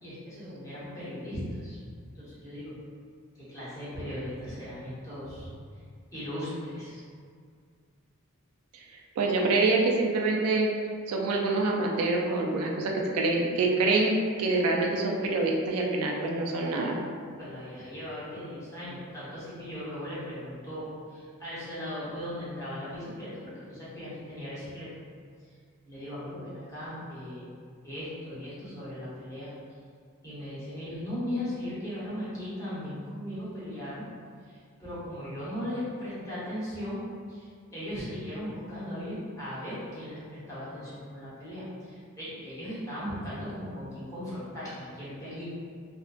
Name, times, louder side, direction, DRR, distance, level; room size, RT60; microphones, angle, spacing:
voice 1, 0.0-2.7 3.3-5.5 6.1-7.0 17.4-24.9 25.9-27.5 27.8-29.5 30.2-34.0 34.4-37.0 37.3-45.4, equal, 15° left, -11 dB, 0.8 m, -38 dB
voice 2, 9.2-10.7 11.1-17.0, right 3 dB, 75° right, 0 dB, 0.3 m, -26 dB
2.5 x 2.1 x 2.3 m, 2.1 s
head